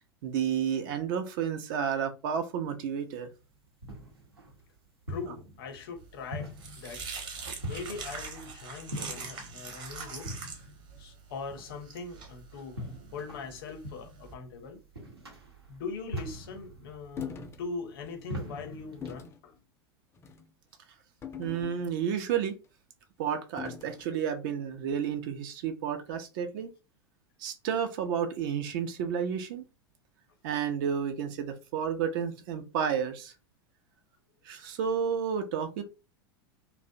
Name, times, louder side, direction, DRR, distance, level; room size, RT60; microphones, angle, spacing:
voice 1, 0.2-3.3 21.4-22.6 23.2-26.7 27.4-29.6 30.4-33.3 34.4-35.8, right 7 dB, 55° right, 0.5 m, -31 dB
sound 1, 3.3-19.2, equal, 90° right, 0.8 m, -44 dB
voice 2, 5.1-7.1 7.6-10.3 11.0-14.8 15.7-19.6, left 4 dB, 65° left, 0.7 m, -41 dB
sound 2, 6.1-14.3, right 5 dB, 35° right, 0.8 m, -43 dB
sound 3, 17.2-17.6 18.1-18.2 19.0-19.4 20.2-20.5 21.2-22.1 23.6-24.1, left 8 dB, 20° left, 0.4 m, -41 dB
2.4 x 2.0 x 2.6 m
figure-of-eight pair, 85°, 13 cm